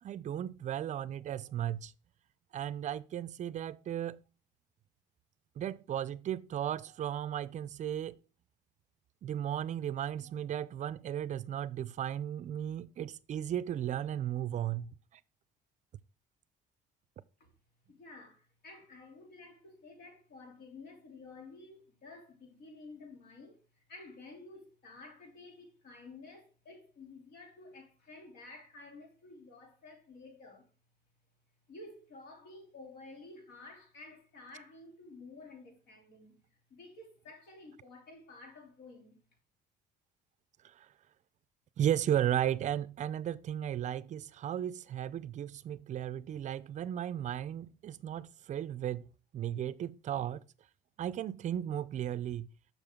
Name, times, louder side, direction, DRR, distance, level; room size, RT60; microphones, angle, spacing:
voice 1, 0.0-1.9 2.5-4.2 5.6-8.2 9.2-14.9 40.6-40.9 41.8-49.1 49.3-50.4 51.0-52.5, right 10 dB, 45° right, 0.4 m, -35 dB
voice 2, 17.9-30.7 31.7-39.2, left 3 dB, 75° left, 2.9 m, -52 dB
6.8 x 6.1 x 3.6 m
cardioid pair, 110°, 17 cm